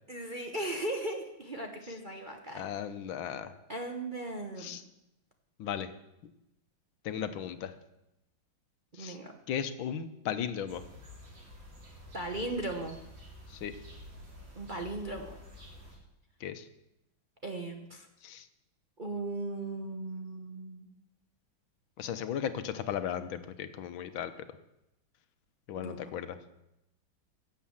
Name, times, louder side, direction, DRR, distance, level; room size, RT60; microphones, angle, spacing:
voice 1, 0.1-2.6 3.7-4.8 9.0-9.3 12.1-13.0 14.6-15.4 17.4-18.1 19.0-20.9 25.7-26.1, right 2 dB, 35° right, 2 dB, 0.9 m, -37 dB
voice 2, 2.6-3.5 4.6-4.8 5.6-5.9 7.0-7.8 8.9-9.2 9.5-10.8 13.5-13.7 16.4-16.7 18.2-18.5 22.0-24.3 25.7-26.4, left 9 dB, 75° left, 11 dB, 1.6 m, -36 dB
sound 1, 10.7-16.0, left 1 dB, 65° right, 4.0 m, -50 dB
16.0 x 7.5 x 7.2 m, 0.88 s
omnidirectional pair, 2.2 m